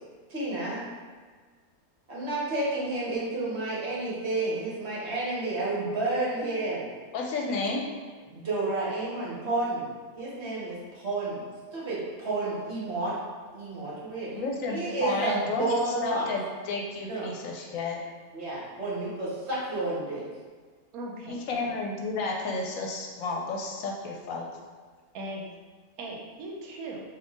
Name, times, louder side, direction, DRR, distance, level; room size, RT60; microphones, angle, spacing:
voice 1, 0.3-0.8 2.1-6.9 8.3-9.9 10.2-11.4 11.7-13.1 13.5-14.3 14.7-16.3 17.1-17.3 18.3-20.2, right 2 dB, 50° right, -6 dB, 1.2 m, -30 dB
voice 2, 7.1-7.8 14.3-18.0 21.3-24.5, left 3 dB, 70° left, 0 dB, 1.0 m, -32 dB
voice 3, 20.9-21.7 25.1-25.5 26.0-27.0, right 1 dB, 80° right, 0 dB, 1.1 m, -38 dB
3.8 x 2.6 x 3.5 m, 1.5 s
omnidirectional pair, 1.5 m